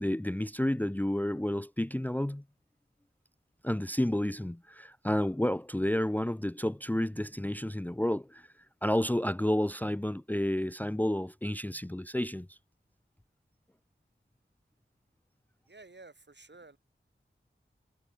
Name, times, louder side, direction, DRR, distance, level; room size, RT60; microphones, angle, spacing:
voice 1, 0.0-2.4 3.6-8.5 8.8-12.6, left 1 dB, 10° left, 0.6 m, -30 dB
voice 2, 15.7-16.8, right 3 dB, 60° right, 6.3 m, -52 dB
wide cardioid pair, 50°, 20 cm